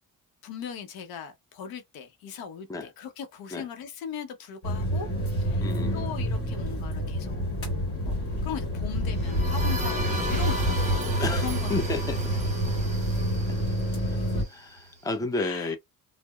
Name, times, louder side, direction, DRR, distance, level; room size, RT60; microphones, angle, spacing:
voice 1, 0.4-5.1 5.4-7.5 8.0-8.1 8.4-11.2 11.4-11.7 15.4-15.8, left 7 dB, 85° left, 0.7 m, -39 dB
sound 1, 4.6-14.4, equal, 40° left, 1.3 m, -28 dB
voice 2, 5.6-6.1 11.2-12.4 13.5-13.6 14.1-14.2 14.5-15.8, left 3 dB, 10° left, 0.5 m, -32 dB
sound 2, 9.0-14.8, equal, 20° right, 1.1 m, -32 dB
2.7 x 2.1 x 2.2 m
cardioid pair, 90°, 35 cm